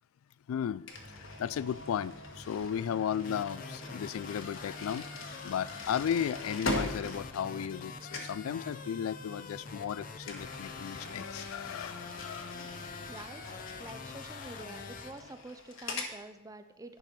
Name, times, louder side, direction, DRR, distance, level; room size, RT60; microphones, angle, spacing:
voice 1, 0.5-5.1 5.4-12.6, left 8 dB, 85° left, 0.3 m, -35 dB
sound 1, 0.9-7.9 8.1-8.4 10.2-16.2, left 2 dB, 70° left, 1.4 m, -42 dB
sound 2, 0.9-15.1, equal, 35° right, 2.5 m, -51 dB
sound 3, 3.2-15.1, left 5 dB, 40° left, 0.6 m, -46 dB
voice 2, 13.1-13.4 13.8-17.0, right 2 dB, 15° right, 0.6 m, -47 dB
10.0 x 5.3 x 5.9 m
head